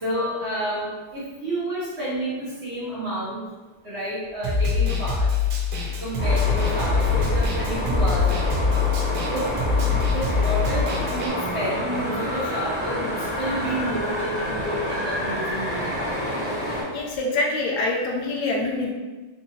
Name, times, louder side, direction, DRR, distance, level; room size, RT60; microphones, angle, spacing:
voice 1, 0.0-3.4 3.8-5.3 6.0-8.7 9.3-9.4 9.8-13.1 13.4-16.1, right 1 dB, 50° right, -9 dB, 0.8 m, -30 dB
Snare drum, 4.4-11.3, left 5 dB, 90° right, 1.3 m, -24 dB
sound 1, 6.2-16.8, left 1 dB, 35° left, 0.6 m, -28 dB
voice 2, 16.9-18.9, left 2 dB, 75° left, -2 dB, 1.1 m, -25 dB
3.7 x 2.6 x 2.7 m, 1.3 s
omnidirectional pair, 1.9 m